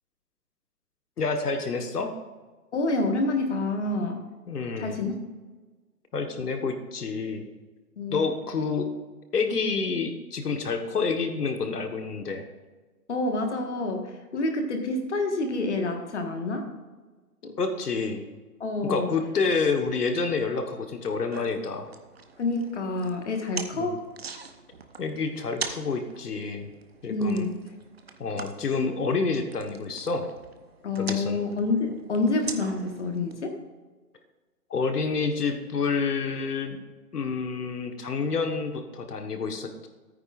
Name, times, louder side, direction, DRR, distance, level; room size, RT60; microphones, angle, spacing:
voice 1, 1.2-2.1 4.5-5.0 6.1-7.5 8.1-8.9 9.3-12.4 17.6-18.2 18.8-21.9 23.7-23.9 25.0-26.7 27.0-27.4 28.2-30.3 31.0-31.4 34.7-36.8 37.1-39.9, left 4 dB, 70° left, 5 dB, 1.4 m, -28 dB
voice 2, 2.7-4.2 4.8-5.1 8.0-8.2 13.1-16.7 17.4-17.5 18.6-19.1 22.4-24.0 27.1-27.6 30.8-33.6, left 2 dB, 45° left, 4 dB, 1.6 m, -28 dB
sound 1, 21.3-33.3, right 5 dB, 40° right, 0.7 m, -42 dB
14.0 x 9.3 x 2.5 m, 1.3 s
hypercardioid pair, 170°, 48 cm